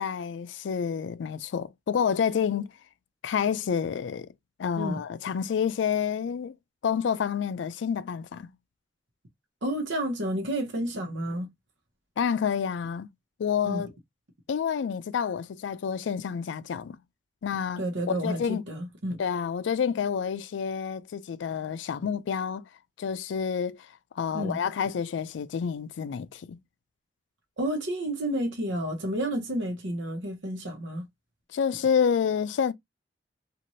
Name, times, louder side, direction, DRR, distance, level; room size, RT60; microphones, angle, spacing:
voice 1, 0.0-2.7 3.2-4.3 4.6-6.6 6.8-8.5 12.2-13.1 13.4-13.9 14.5-17.0 17.4-17.8 18.1-18.6 19.2-22.6 23.0-23.9 24.2-26.6 31.5-32.7, left 7 dB, 80° left, 0.3 m, -28 dB
voice 2, 9.6-11.5 13.6-13.8 17.8-19.2 24.3-24.6 27.6-31.0, right 1 dB, 90° right, 0.9 m, -30 dB
2.7 x 2.5 x 3.0 m
head